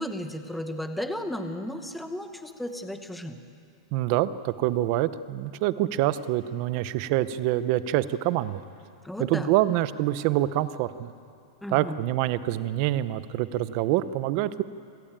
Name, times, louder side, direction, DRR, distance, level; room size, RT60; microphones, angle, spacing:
voice 1, 0.0-3.4 9.0-9.5 11.6-12.0, left 1 dB, ahead, 7 dB, 0.9 m, -34 dB
voice 2, 3.9-8.6 9.3-11.1 11.7-14.6, right 14 dB, 35° right, 15 dB, 0.7 m, -26 dB
27.0 x 18.0 x 8.8 m, 2.5 s
supercardioid pair, 175°, 3 cm